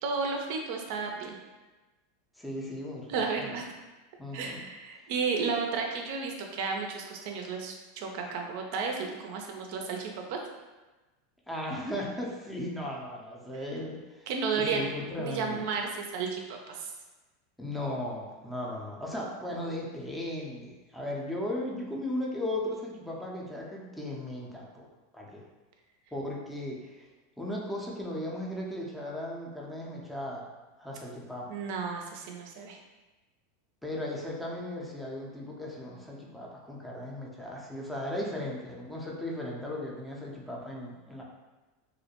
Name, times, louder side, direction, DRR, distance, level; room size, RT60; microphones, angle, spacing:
voice 1, 0.0-1.4 3.1-3.7 4.3-10.4 14.3-14.9 15.2-16.9 31.5-32.8, right 5 dB, 65° right, 2 dB, 0.4 m, -33 dB
voice 2, 2.4-3.5 4.2-4.6 11.5-14.3 14.6-15.6 17.6-24.9 25.1-25.4 26.1-27.1 27.4-30.5 30.8-31.6 33.8-41.2, left 1 dB, 5° left, -3 dB, 0.5 m, -36 dB
2.4 x 2.1 x 2.8 m, 1.2 s
supercardioid pair, 115°, 0 cm